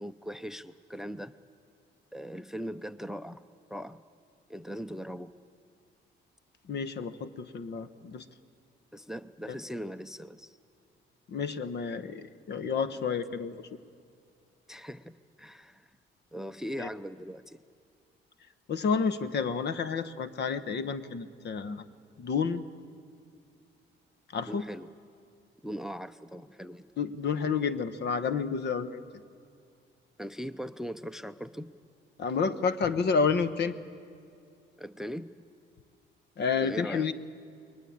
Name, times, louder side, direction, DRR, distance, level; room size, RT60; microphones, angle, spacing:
voice 1, 0.0-1.4 2.1-3.4 3.7-4.0 4.5-5.3 8.9-10.6 14.7-15.9 16.3-17.6 24.5-24.9 25.6-26.9 30.2-31.7 34.8-35.3 36.6-37.1, equal, ahead, 15 dB, 0.6 m, -40 dB
voice 2, 6.7-8.2 11.3-13.6 16.8-16.9 18.7-21.8 22.2-22.6 24.3-24.6 27.0-29.0 32.2-33.7 36.4-37.1, left 5 dB, 60° left, 14 dB, 1.1 m, -30 dB
22.0 x 20.0 x 8.7 m, 2.4 s
cardioid pair, 90°, 20 cm